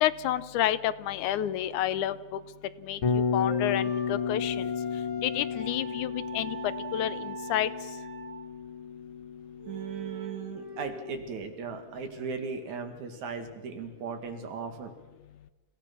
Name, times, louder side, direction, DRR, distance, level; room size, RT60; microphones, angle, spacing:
voice 1, 0.0-2.4 2.8-3.0 3.3-4.7 5.2-6.6 6.9-7.7, left 12 dB, 90° left, 13 dB, 2.3 m, -29 dB
Bass guitar, 3.0-11.1, left 6 dB, 55° left, 2.1 m, -33 dB
sound 1, 3.5-8.5 9.0-9.1 9.5-11.2, right 4 dB, 40° right, 3.8 m, -43 dB
voice 2, 9.7-14.9, right 5 dB, 75° right, 6 dB, 3.5 m, -37 dB
29.5 x 17.0 x 6.1 m, 1.2 s
omnidirectional pair, 3.4 m